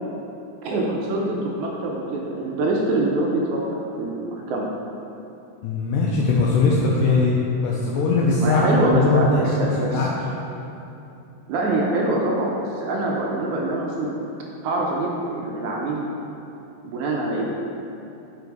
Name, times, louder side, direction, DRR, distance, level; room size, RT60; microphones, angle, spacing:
voice 1, 0.6-4.6 8.4-10.0 11.5-14.2 14.6-16.0 16.8-17.4, right 2 dB, 80° right, -2 dB, 1.7 m, -24 dB
voice 2, 5.6-10.1, left 3 dB, 80° left, -3 dB, 2.0 m, -20 dB
5.1 x 4.8 x 4.6 m, 2.8 s
omnidirectional pair, 4.0 m